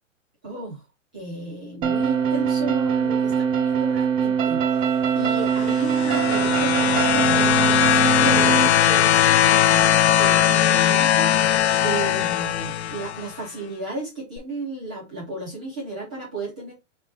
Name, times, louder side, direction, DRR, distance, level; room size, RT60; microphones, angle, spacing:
voice 1, 0.4-0.8 1.1-16.7, right 2 dB, 5° right, 0.4 m, -34 dB
sound 1, 1.8-8.7, right 7 dB, 75° right, 0.8 m, -22 dB
sound 2, 5.5-13.3 14.4-14.5, left 11 dB, 60° left, 0.5 m, -19 dB
3.6 x 3.3 x 3.9 m
hypercardioid pair, 165°, 39 cm